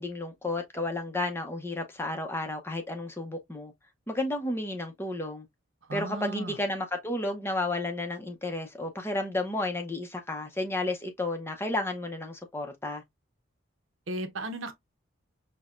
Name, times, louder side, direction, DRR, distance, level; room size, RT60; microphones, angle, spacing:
voice 1, 0.0-3.7 4.1-5.5 5.9-13.0, left 2 dB, 10° left, 0.6 m, -32 dB
voice 2, 5.9-6.6 14.1-14.7, right 2 dB, 70° right, 0.8 m, -35 dB
6.1 x 2.2 x 2.4 m
head